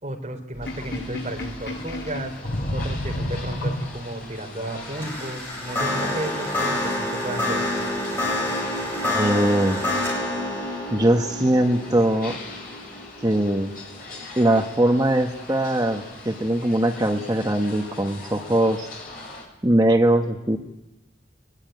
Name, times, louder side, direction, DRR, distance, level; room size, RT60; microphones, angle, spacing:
voice 1, 0.0-2.3 2.7-7.7, right 1 dB, 40° right, 2 dB, 3.9 m, -33 dB
Sink (filling or washing), 0.5-4.3, left 1 dB, 70° left, 6.6 m, -30 dB
sound 1, 0.6-19.4, left 2 dB, 50° left, 7.6 m, -41 dB
sound 2, 4.8-14.2, left 1 dB, 10° left, 7.7 m, -28 dB
voice 2, 9.1-9.8 10.9-12.3 13.2-13.7 14.4-18.9 19.6-20.6, right 1 dB, 20° right, 4 dB, 1.2 m, -21 dB
21.5 x 21.0 x 9.5 m, 0.97 s
head